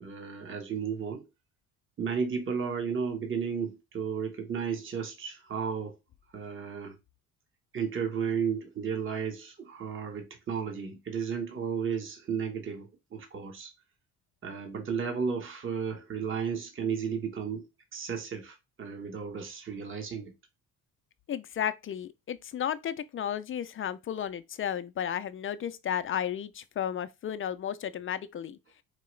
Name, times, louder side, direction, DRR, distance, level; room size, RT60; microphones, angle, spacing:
voice 1, 0.0-1.3 2.0-6.0 6.3-7.0 7.7-13.7 14.4-17.7 17.9-20.3, right 6 dB, 35° right, 1.1 m, -33 dB
voice 2, 21.3-28.6, left 9 dB, 35° left, 0.4 m, -33 dB
4.6 x 2.9 x 3.1 m
cardioid pair, 115°, 36 cm